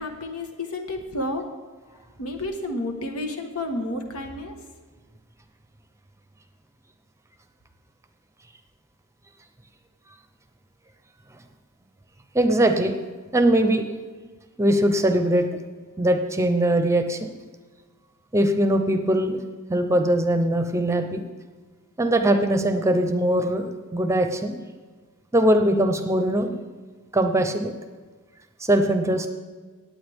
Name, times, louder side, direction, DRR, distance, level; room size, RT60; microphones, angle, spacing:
voice 1, 0.0-1.5 2.2-4.6, left 1 dB, 85° left, 4 dB, 1.4 m, -31 dB
voice 2, 12.3-13.0 13.3-13.8 14.6-15.5 16.0-17.3 18.3-19.4 19.7-21.2 22.0-24.6 25.3-26.6 27.1-27.7 28.6-29.3, right 1 dB, 15° right, 6 dB, 0.7 m, -21 dB
18.0 x 8.5 x 3.5 m, 1.4 s
head